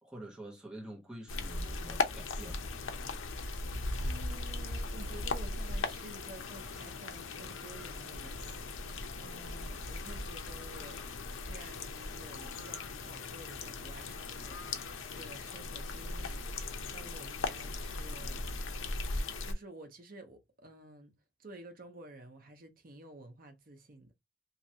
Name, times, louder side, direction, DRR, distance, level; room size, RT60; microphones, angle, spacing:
voice 1, 0.0-2.7, right 1 dB, 5° right, 0.6 m, -47 dB
sound 1, 1.3-19.5, left 3 dB, 85° left, 0.6 m, -38 dB
voice 2, 4.0-8.9 9.2-11.0 11.4-14.8 15.1-16.5 16.9-18.6 19.1-21.1 21.4-24.1, right 2 dB, 45° right, 0.8 m, -51 dB
3.1 x 2.6 x 2.7 m
head